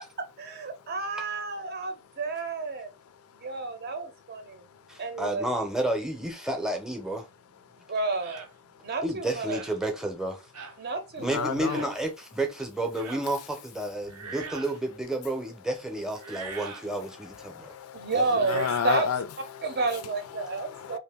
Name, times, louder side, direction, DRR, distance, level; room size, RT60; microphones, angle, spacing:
voice 1, 0.4-2.9 3.4-4.6 5.0-5.5 7.9-8.5 8.8-9.6 10.8-11.9 17.9-19.0 19.6-21.0, right 3 dB, 45° right, 0.7 m, -31 dB
voice 2, 2.9-4.0 4.3-5.0 7.5-7.9 8.7-8.9 10.7-10.9 11.2-11.9 13.4-13.5 14.1-14.3 16.2-21.0, left 8 dB, 70° left, 0.4 m, -36 dB
voice 3, 4.9-7.2 9.0-10.5 11.2-17.7 18.1-18.2, right 1 dB, 5° right, 0.6 m, -31 dB
sound 1, 8.2-8.5 9.5-9.8 10.5-10.8 11.6-11.9 12.9-13.3 14.1-14.8 16.2-16.9 18.3-19.0, right 5 dB, 90° right, 0.7 m, -41 dB
2.7 x 2.5 x 3.5 m
head